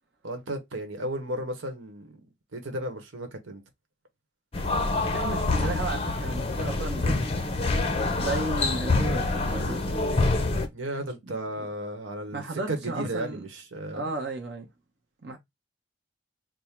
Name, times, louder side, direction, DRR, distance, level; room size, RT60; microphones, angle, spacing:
voice 1, 0.2-2.1 2.5-3.6 10.7-14.1, right 1 dB, 90° right, 0.9 m, -34 dB
sound 1, 4.5-10.7, left 2 dB, 30° left, 0.5 m, -26 dB
voice 2, 5.1-7.3 8.1-10.0 11.2-11.7 12.3-13.4 13.9-14.7 15.2-15.4, right 2 dB, 55° right, 0.8 m, -34 dB
3.6 x 2.0 x 4.2 m
head